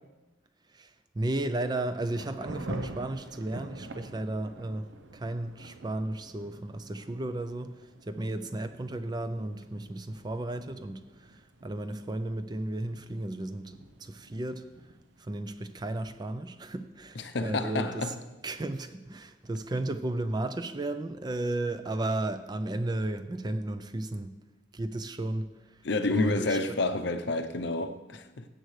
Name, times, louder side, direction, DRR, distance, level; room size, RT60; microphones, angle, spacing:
voice 1, 0.7-14.6 15.2-18.1 18.4-24.4 24.7-25.8 26.1-26.6, right 1 dB, 20° right, 0.4 m, -34 dB
Thunder / Rain, 1.6-16.0, right 1 dB, 70° right, 0.8 m, -47 dB
voice 2, 17.2-18.2 25.8-28.4, left 2 dB, 60° left, 0.6 m, -29 dB
15.5 x 7.7 x 3.2 m
head